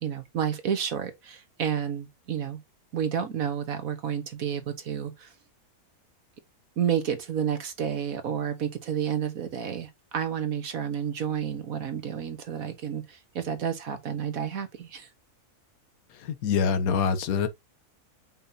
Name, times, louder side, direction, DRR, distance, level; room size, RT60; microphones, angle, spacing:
voice 1, 0.0-2.6 2.9-5.3 6.8-15.1, right 8 dB, 65° right, 1.5 m, -30 dB
voice 2, 16.2-17.5, left 6 dB, 70° left, 1.3 m, -25 dB
7.2 x 5.5 x 2.8 m
omnidirectional pair, 1.6 m